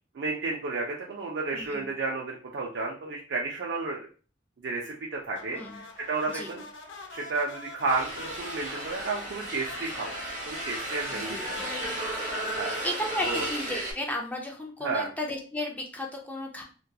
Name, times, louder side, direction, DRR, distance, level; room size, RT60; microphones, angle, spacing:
voice 1, 0.2-4.1 4.6-6.6 7.1-11.7 12.6-12.8 13.2-13.5 14.8-15.1, right 3 dB, 70° right, -2 dB, 0.4 m, -32 dB
voice 2, 1.5-1.9 5.5-5.8 6.3-6.5 11.1-11.6 12.6-16.6, left 1 dB, 10° left, 0 dB, 0.3 m, -34 dB
sound 1, 5.3-13.8, left 2 dB, 80° left, 0.5 m, -46 dB
sound 2, 7.9-13.9, right 1 dB, 40° right, 1.1 m, -34 dB
2.7 x 2.2 x 2.2 m, 0.38 s
head